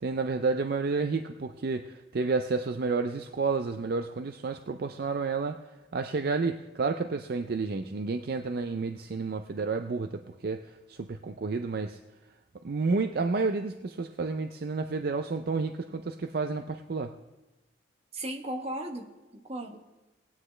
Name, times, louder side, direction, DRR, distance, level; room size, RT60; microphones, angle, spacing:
voice 1, 0.0-5.6 5.9-10.6 10.9-12.0 12.6-17.1, right 4 dB, 55° right, 7 dB, 0.4 m, -30 dB
voice 2, 18.1-19.8, right 1 dB, 35° right, 2 dB, 1.2 m, -36 dB
18.5 x 9.6 x 3.3 m, 1.1 s
head